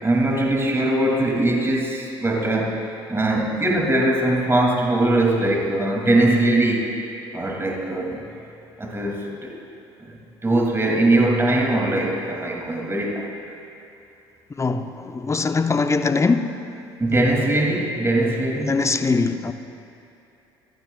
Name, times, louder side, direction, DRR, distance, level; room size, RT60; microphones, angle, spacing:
voice 1, 0.0-6.9 7.3-8.2 8.8-9.6 10.0-10.2 10.4-13.3 17.0-18.8, right 1 dB, 20° right, 2.7 m, -21 dB
voice 2, 14.6-16.6 18.6-19.5, left 4 dB, 20° left, 0.8 m, -22 dB
23.5 x 15.5 x 2.4 m
hypercardioid pair, 55°, 13 cm